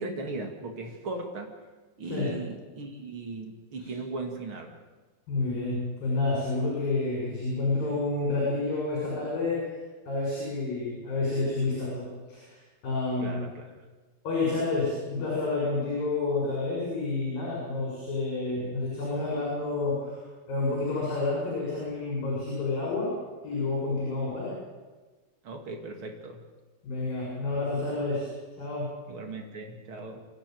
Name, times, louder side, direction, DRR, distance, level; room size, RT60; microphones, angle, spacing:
voice 1, 0.0-1.5 2.0-4.7 13.2-13.7 25.4-26.4 29.1-30.2, right 3 dB, 40° right, 3 dB, 2.0 m, -37 dB
voice 2, 2.0-2.3 3.8-3.9 5.3-9.6 10.1-12.6 12.8-13.4 14.2-20.2 20.5-23.1 23.4-24.5 26.8-28.3 28.6-28.9, left 3 dB, 45° left, -4 dB, 8.4 m, -29 dB
26.0 x 13.0 x 9.3 m, 1.2 s
omnidirectional pair, 5.6 m